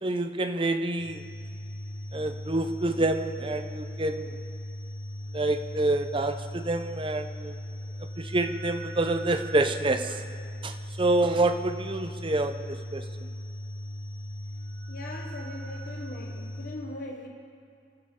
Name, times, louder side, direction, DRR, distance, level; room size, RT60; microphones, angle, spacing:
voice 1, 0.0-1.2 2.1-4.4 5.3-7.5 8.2-10.2 10.6-13.3, right 2 dB, 25° right, 8 dB, 0.6 m, -27 dB
sound 1, 1.0-16.7, equal, 50° right, 3.7 m, -38 dB
voice 2, 14.9-17.3, left 1 dB, 50° left, 0 dB, 1.0 m, -40 dB
23.5 x 13.5 x 3.7 m, 2.3 s
head